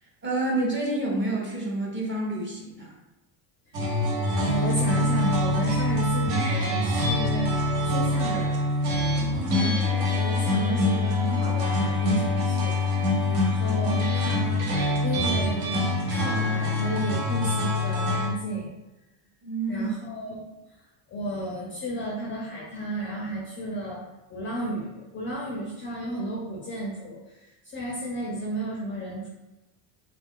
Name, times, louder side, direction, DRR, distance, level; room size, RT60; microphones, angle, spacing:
voice 1, 0.2-2.9 9.1-9.8 19.4-19.9, right 2 dB, 25° right, -3 dB, 0.7 m, -29 dB
sound 1, 3.7-18.3, left 2 dB, 60° right, 0.9 m, -25 dB
voice 2, 4.4-8.6 9.6-18.7 19.7-20.4 21.1-24.0 24.3-29.3, right 1 dB, 25° left, -4 dB, 0.4 m, -33 dB
2.3 x 2.3 x 3.5 m, 1.0 s
cardioid pair, 125°, 49 cm